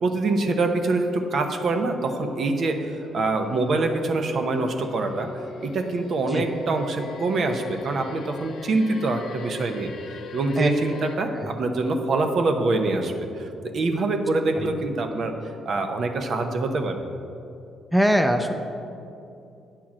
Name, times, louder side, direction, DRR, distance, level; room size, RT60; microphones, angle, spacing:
voice 1, 0.0-5.3 5.6-9.9 10.3-15.3 15.6-17.0, right 2 dB, 55° right, 5 dB, 0.8 m, -25 dB
sound 1, 2.2-11.2, left 4 dB, 60° left, 0.7 m, -43 dB
voice 2, 10.6-11.0 11.3-11.5 17.9-18.5, equal, 5° right, 6 dB, 0.6 m, -22 dB
8.9 x 4.6 x 7.3 m, 2.7 s
cardioid pair, 90°, 0 cm